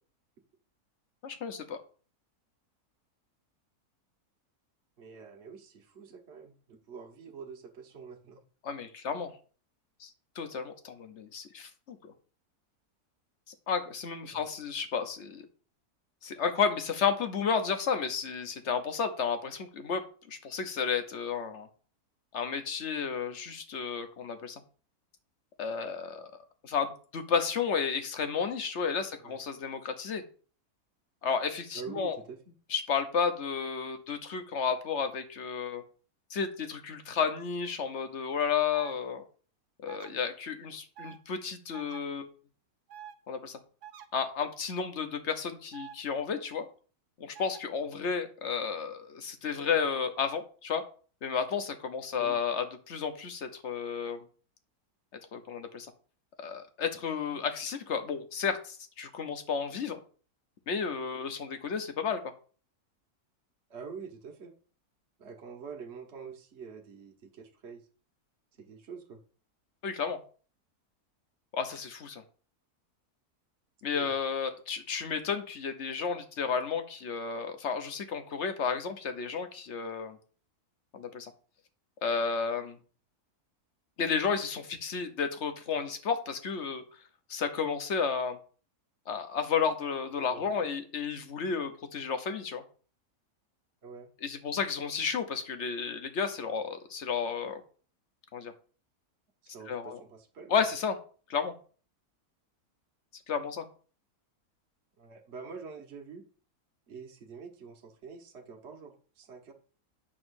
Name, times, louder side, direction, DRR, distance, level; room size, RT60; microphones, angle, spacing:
voice 1, 1.2-1.8 8.6-9.3 10.0-10.1 10.4-12.1 13.7-15.5 16.2-21.7 22.3-24.5 25.6-26.3 26.6-30.2 31.2-32.2 32.7-35.8 36.3-39.2 39.8-42.3 43.3-43.6 44.1-46.7 47.2-50.8 51.2-54.2 55.3-55.9 56.4-60.0 60.7-62.2 69.8-70.2 71.5-72.2 73.8-80.2 80.9-81.3 82.0-82.8 84.0-86.8 87.3-88.4 89.1-92.6 94.2-97.6 98.3-98.5 99.7-100.0 100.5-101.0 101.3-101.5 103.3-103.6, left 6 dB, 50° left, 8 dB, 1.2 m, -32 dB
voice 2, 5.0-8.4 14.3-14.4 29.2-29.4 31.7-32.4 52.2-52.4 63.7-64.5 65.2-67.8 68.6-69.2 73.9-74.1 90.3-90.7 93.8-94.1 99.5-100.7 105.0-106.2 106.9-109.5, right 5 dB, 50° right, 3 dB, 1.4 m, -46 dB
sound 1, 38.7-38.9 39.9-40.1 41.0-41.2 41.7-42.0 42.9-43.2 43.8-44.1 45.7-46.0 47.4-47.6, right 10 dB, 85° right, 1.3 m, -47 dB
8.7 x 3.1 x 6.3 m, 0.40 s
omnidirectional pair, 1.6 m